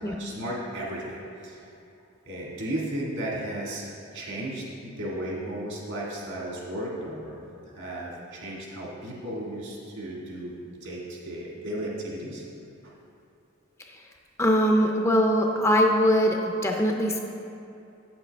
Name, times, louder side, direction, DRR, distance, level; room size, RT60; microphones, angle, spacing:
voice 1, 0.0-1.7 2.3-7.4 7.7-10.5 10.8-12.4 12.8-12.9, right 1 dB, 70° right, -4 dB, 1.8 m, -35 dB
voice 2, 14.4-17.2, equal, 15° left, 1 dB, 0.4 m, -22 dB
8.3 x 7.2 x 3.4 m, 2.7 s
head